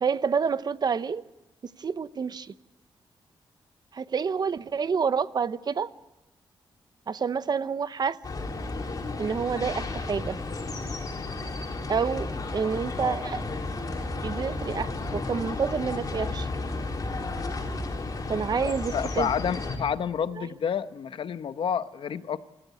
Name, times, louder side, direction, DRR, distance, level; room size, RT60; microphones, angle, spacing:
voice 1, 0.0-1.2 1.8-2.5 3.9-5.9 7.1-8.2 9.2-10.4 11.9-12.3 12.5-13.4 14.2-16.5 18.3-19.3 20.4-20.5, right 6 dB, 50° right, 14 dB, 0.8 m, -28 dB
sound 1, 8.2-19.8, left 3 dB, 40° left, 4.3 m, -33 dB
voice 2, 18.6-22.4, left 7 dB, 70° left, 12 dB, 1.0 m, -29 dB
27.5 x 15.0 x 8.2 m, 1.0 s
wide cardioid pair, 120°, 9 cm